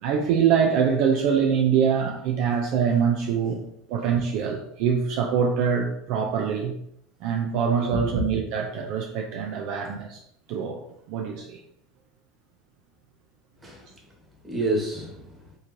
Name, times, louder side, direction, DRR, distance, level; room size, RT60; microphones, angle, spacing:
voice 1, 0.0-3.6 3.9-6.7 7.2-10.2 10.5-10.8 11.1-11.6, right 7 dB, 65° right, 0.5 m, -24 dB
voice 2, 7.9-8.2 13.6-15.6, right 1 dB, 15° right, 1.6 m, -30 dB
4.7 x 3.1 x 2.8 m
supercardioid pair, 100°, 0 cm